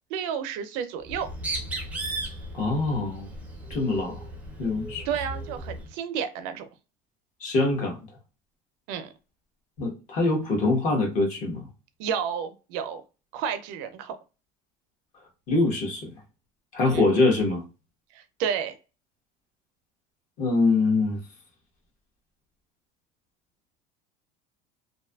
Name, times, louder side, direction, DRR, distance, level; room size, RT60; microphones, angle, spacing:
voice 1, 0.1-1.3 5.1-6.7 8.9-9.1 12.0-13.0 13.3-14.2 16.9-17.0 18.1-18.7, right 8 dB, 60° right, 0.4 m, -31 dB
Bird, 1.0-5.9, right 1 dB, 5° right, 0.5 m, -36 dB
voice 2, 2.5-3.3 3.7-4.2 4.6-5.1 7.4-8.0 9.8-11.7 15.5-16.1 16.7-17.6 20.4-21.2, left 3 dB, 40° left, 0.8 m, -24 dB
2.5 x 2.3 x 2.2 m
cardioid pair, 165°, 20 cm